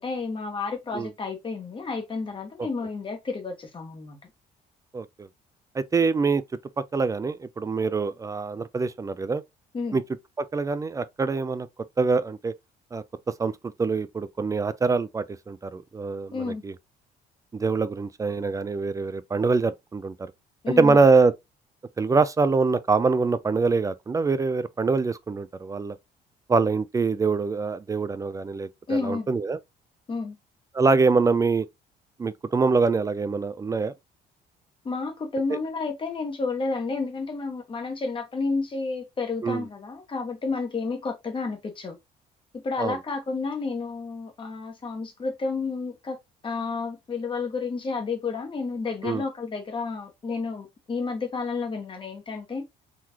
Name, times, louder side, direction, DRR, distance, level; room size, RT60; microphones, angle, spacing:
voice 1, 0.0-4.2 9.7-10.0 16.3-16.6 20.6-21.0 28.9-29.3 30.1-30.4 34.8-42.0 42.5-46.2 46.4-52.7, left 4 dB, 30° left, 1.2 m, -31 dB
voice 2, 4.9-5.3 5.7-6.4 6.8-9.4 9.9-10.0 10.5-11.7 12.0-12.5 12.9-13.0 13.4-16.7 17.5-20.1 20.7-21.3 22.0-26.0 26.5-29.6 30.7-31.7 32.2-33.9 35.5-35.6 39.4-39.6 42.8-43.0 49.0-49.2, right 4 dB, 20° right, 0.3 m, -24 dB
3.9 x 3.1 x 2.9 m
cardioid pair, 110°, 17 cm